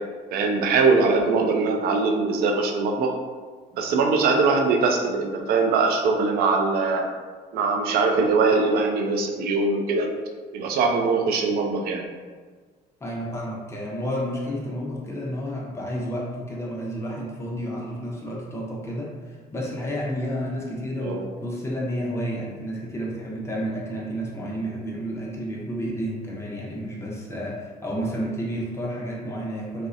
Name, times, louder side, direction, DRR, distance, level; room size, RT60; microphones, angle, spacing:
voice 1, 0.3-3.1 3.7-7.1 7.5-10.1 10.5-12.0 21.0-21.3, right 4 dB, 65° right, 2 dB, 0.4 m, -22 dB
voice 2, 13.0-29.9, equal, 15° left, -3 dB, 0.5 m, -31 dB
2.6 x 2.0 x 2.4 m, 1.5 s
cardioid pair, 110°, 17 cm